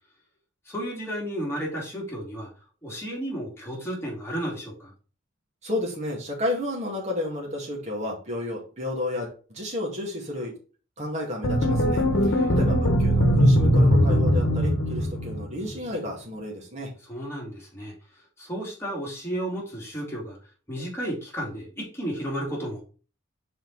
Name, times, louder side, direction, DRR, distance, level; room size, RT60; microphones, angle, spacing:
voice 1, 0.7-2.5 2.8-4.9 12.3-12.7 17.0-17.9 18.4-20.4 20.7-22.8, equal, 15° left, -4 dB, 2.4 m, -33 dB
voice 2, 5.6-10.5 11.0-16.9, left 1 dB, 35° right, -1 dB, 2.1 m, -32 dB
sound 1, 11.4-15.7, equal, 80° left, 1.0 m, -20 dB
5.3 x 4.4 x 4.0 m, 0.37 s
head